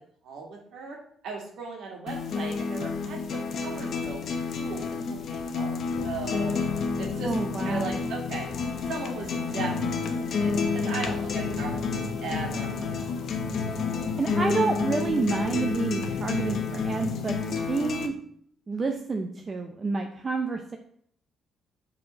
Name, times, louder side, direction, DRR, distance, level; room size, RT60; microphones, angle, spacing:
voice 1, 0.2-1.0 1.2-6.6 7.0-7.3 7.6-8.5 8.9-13.2, right 4 dB, 75° right, -1 dB, 2.1 m, -38 dB
sound 1, 2.1-18.1, left 4 dB, 60° left, 0.9 m, -30 dB
sound 2, 5.9-17.3, left 8 dB, 85° left, 0.5 m, -38 dB
voice 2, 7.2-8.0 14.2-17.4 17.7-18.1 18.7-20.8, right 3 dB, 35° right, 4 dB, 0.7 m, -29 dB
5.1 x 4.3 x 5.7 m, 0.64 s
cardioid pair, 90°, 0 cm